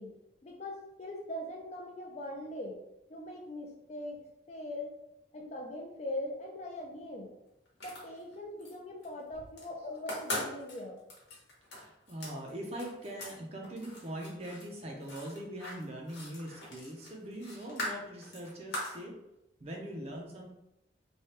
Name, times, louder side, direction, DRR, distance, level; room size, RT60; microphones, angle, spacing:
voice 1, 0.0-2.8 3.1-4.9 5.3-7.4 7.8-11.0, left 1 dB, 35° left, 1 dB, 0.4 m, -41 dB
sound 1, 7.7-8.7 9.0-9.7 10.0-13.4 13.6-19.0, left 1 dB, 70° left, 1.0 m, -41 dB
voice 2, 11.7-19.2 19.6-20.5, right 1 dB, 35° right, -1 dB, 0.5 m, -42 dB
3.2 x 2.2 x 2.8 m, 0.86 s
head